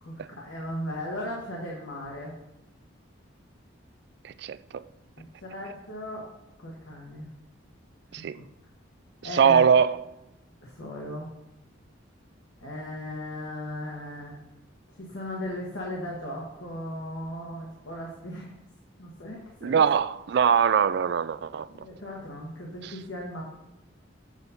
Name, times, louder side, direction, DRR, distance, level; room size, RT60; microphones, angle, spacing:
voice 1, 0.0-2.3 5.4-6.3 6.6-7.3 8.1-8.2 9.2-9.6 10.6-11.3 12.6-14.3 14.9-18.5 19.0-19.8 21.7-23.4, equal, 70° left, 1.4 m, -37 dB
voice 2, 4.2-4.8 8.1-8.4 9.3-10.0 19.6-21.7 22.8-22.9, right 7 dB, 55° right, 0.3 m, -22 dB
8.0 x 4.1 x 5.6 m
head